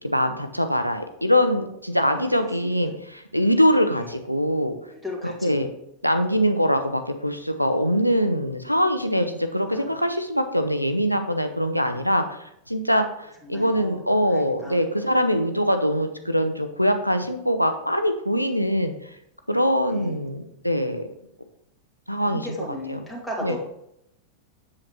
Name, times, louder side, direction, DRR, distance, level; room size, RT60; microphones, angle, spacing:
voice 1, 0.0-4.7 5.2-5.7 6.0-18.9 19.5-21.1 22.1-22.5 22.9-23.0 23.4-23.6, equal, 90° left, 7 dB, 0.6 m, -23 dB
voice 2, 2.0-2.3 4.9-5.5 9.6-9.9 13.4-14.0 14.3-15.2 19.9-20.2 22.1-23.6, left 1 dB, ahead, -3 dB, 1.9 m, -36 dB
7.7 x 7.2 x 3.0 m, 0.78 s
figure-of-eight pair, 90°, 0 cm